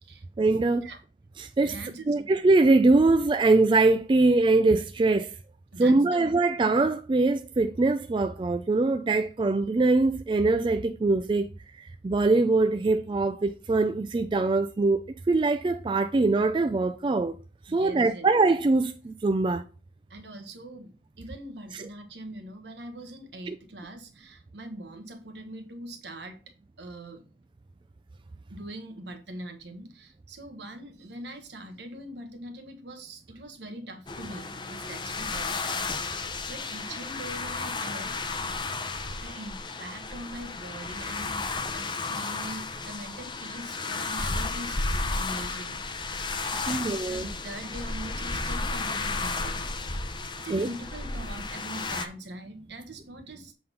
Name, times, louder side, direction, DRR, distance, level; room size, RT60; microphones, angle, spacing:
voice 1, 0.4-0.9 1.4-1.7 2.1-5.4 5.8-15.0 15.3-17.4 17.7-19.6 21.7-21.9 23.5-23.6 46.7-47.3 50.5-50.7, right 3 dB, 25° right, 0.3 m, -23 dB
voice 2, 1.6-2.4 5.7-6.4 17.7-18.3 20.1-27.2 28.5-38.1 39.1-45.8 46.3-49.8 50.4-53.5, right 1 dB, 70° right, 1.4 m, -42 dB
sound 1, 34.1-52.1, left 3 dB, 25° left, 0.7 m, -33 dB
7.8 x 3.8 x 5.4 m
head